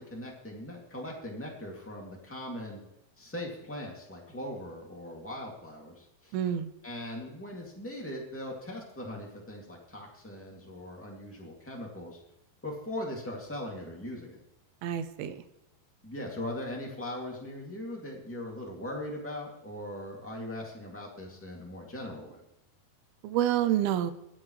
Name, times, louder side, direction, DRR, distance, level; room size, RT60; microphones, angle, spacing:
voice 1, 0.0-2.8 3.2-6.4 6.8-12.2 12.6-14.4 16.0-22.4, left 1 dB, 5° left, -1 dB, 1.0 m, -40 dB
voice 2, 6.3-6.7 14.8-15.4 23.2-24.1, right 11 dB, 85° right, 11 dB, 2.6 m, -28 dB
22.0 x 7.5 x 3.1 m, 0.88 s
omnidirectional pair, 4.4 m